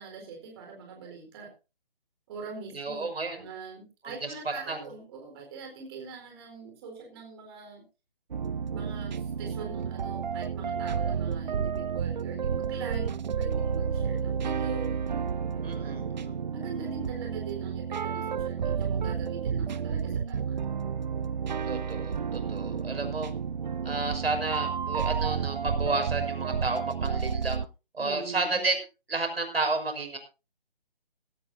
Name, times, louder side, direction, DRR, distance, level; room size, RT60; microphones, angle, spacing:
voice 1, 0.0-1.5 2.3-3.0 3.3-7.8 8.7-15.1 15.5-20.6 28.0-28.6, right 4 dB, 25° right, 2 dB, 4.2 m, -43 dB
voice 2, 2.7-3.4 4.0-4.1 4.4-4.8 15.6-16.0 21.7-23.3 23.8-27.6 27.9-28.8 29.1-30.2, right 3 dB, 80° right, 6 dB, 6.2 m, -31 dB
sound 1, 8.3-27.7, right 7 dB, 50° right, 0.6 m, -31 dB
17.5 x 14.5 x 2.7 m, 0.31 s
figure-of-eight pair, 160°, 30 cm